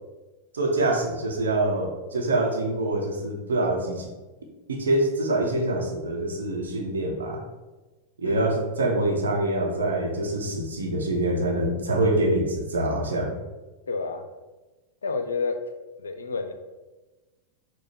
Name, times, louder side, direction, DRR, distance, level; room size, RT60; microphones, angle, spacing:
voice 1, 0.5-4.1 4.7-7.4 8.2-13.3, right 1 dB, 70° right, 0 dB, 0.8 m, -25 dB
voice 2, 13.9-14.3 15.0-15.6 16.0-16.5, left 4 dB, 70° left, 7 dB, 0.4 m, -29 dB
4.9 x 2.0 x 4.2 m, 1.2 s
figure-of-eight pair, 90°, 0 cm